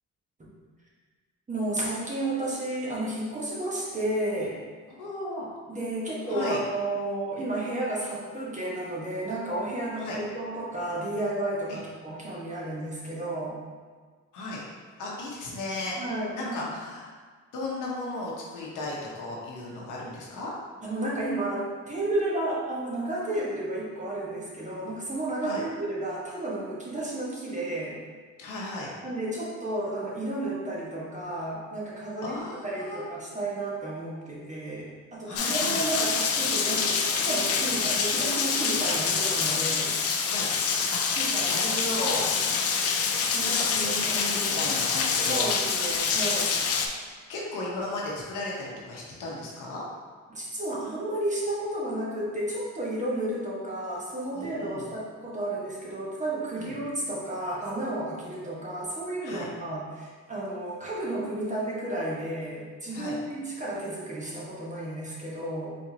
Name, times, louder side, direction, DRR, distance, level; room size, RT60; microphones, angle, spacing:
voice 1, 1.5-4.6 5.7-13.6 16.0-16.7 20.8-28.0 29.0-39.9 41.2-41.6 42.0-42.3 43.3-43.6 43.8-44.7 45.3-46.6 50.3-65.7, right 1 dB, 25° right, -6 dB, 1.2 m, -32 dB
voice 2, 4.9-5.5 6.3-6.6 10.0-10.2 11.7-11.8 14.3-14.6 15.0-16.0 16.4-17.0 17.5-20.5 25.4-25.6 28.4-28.9 32.2-33.0 35.2-35.8 40.2-40.5 40.9-42.3 43.4-45.5 47.3-49.9 54.3-54.8 56.6-56.7 59.2-59.5 62.9-63.1, left 2 dB, 85° left, -4 dB, 1.0 m, -35 dB
Rain, 35.4-46.9, left 5 dB, 55° left, 0.5 m, -26 dB
4.3 x 3.5 x 2.8 m, 1.5 s
cardioid pair, 90°, 30 cm